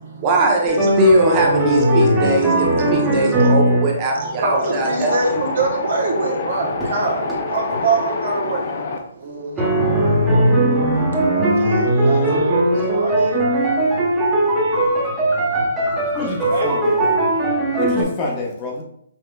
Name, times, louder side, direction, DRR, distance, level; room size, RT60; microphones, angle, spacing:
voice 1, 0.2-5.1, right 1 dB, 25° right, 0 dB, 0.8 m, -19 dB
sound 1, 0.7-3.9 5.3-5.6 6.8-7.4 7.7-7.8 9.6-18.0, right 1 dB, 10° right, 1.1 m, -18 dB
voice 2, 4.1-8.7 9.1-9.7 11.6-13.3 16.4-16.7, right 3 dB, 60° right, -1 dB, 1.1 m, -25 dB
Wind, 4.4-9.0, left 3 dB, 50° left, 0.6 m, -26 dB
voice 3, 16.1-17.2 17.8-18.8, left 2 dB, 25° left, -2 dB, 1.0 m, -27 dB
5.4 x 2.8 x 2.3 m, 0.71 s
hypercardioid pair, 150°, 0 cm